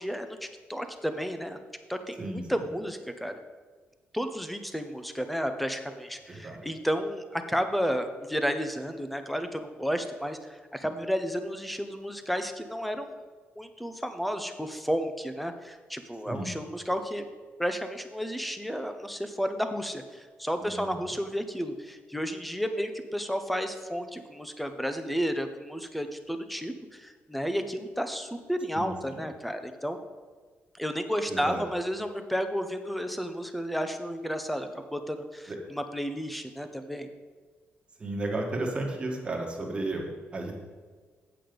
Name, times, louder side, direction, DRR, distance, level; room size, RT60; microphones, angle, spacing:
voice 1, 0.0-1.6 1.9-3.3 4.1-13.1 13.6-17.3 17.6-30.0 30.7-37.1, equal, ahead, 7 dB, 0.6 m, -32 dB
voice 2, 6.3-6.7 16.3-16.5 20.6-20.9 28.7-29.2 31.3-31.6 35.5-35.6 38.0-40.5, right 2 dB, 25° right, 0 dB, 1.5 m, -33 dB
8.4 x 7.7 x 5.1 m, 1.5 s
cardioid pair, 145°, 4 cm